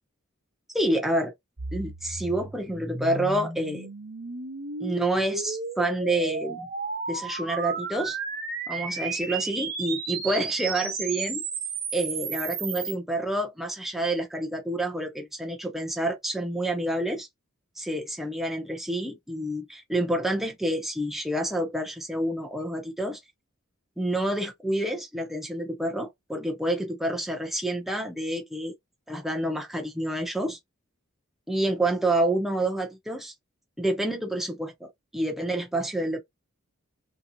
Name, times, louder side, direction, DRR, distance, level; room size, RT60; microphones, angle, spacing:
voice 1, 0.7-1.3 1.7-3.9 4.8-6.7 7.1-8.2 8.7-11.4 11.9-17.3 17.8-23.2 24.0-28.7 29.1-30.6 31.5-33.3 33.8-36.2, right 1 dB, ahead, 0.6 m, -28 dB
sound 1, 1.6-12.9, right 4 dB, 45° right, 0.9 m, -33 dB
3.1 x 2.8 x 2.6 m
head